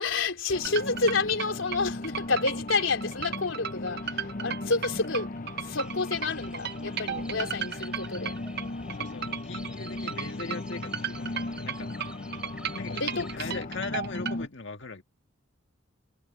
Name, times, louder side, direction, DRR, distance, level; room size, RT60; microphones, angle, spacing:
voice 1, 0.0-5.3 5.6-8.3 12.9-13.6, left 3 dB, 85° left, 3.7 m, -29 dB
sound 1, 0.5-14.5, left 2 dB, 45° left, 0.7 m, -37 dB
sound 2, 0.6-14.4, right 8 dB, 55° right, 0.9 m, -35 dB
sound 3, 5.7-13.4, right 1 dB, 5° right, 4.3 m, -50 dB
voice 2, 9.0-12.2 12.7-15.0, left 3 dB, 70° left, 1.8 m, -39 dB
head